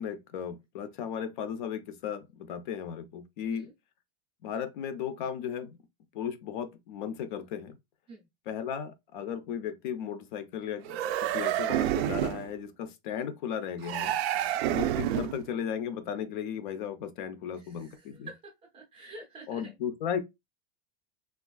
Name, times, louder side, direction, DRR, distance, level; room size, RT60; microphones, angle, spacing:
voice 1, 0.0-3.7 4.4-5.8 6.1-7.8 8.5-14.2 14.7-18.3 19.5-20.2, left 8 dB, 50° left, 0.4 m, -35 dB
sound 1, 10.8-12.5 13.8-15.4, right 12 dB, 80° right, 0.5 m, -29 dB
voice 2, 14.3-14.6 17.5-19.7, right 2 dB, 15° right, 0.5 m, -49 dB
3.4 x 2.4 x 2.2 m
supercardioid pair, 180°, 31 cm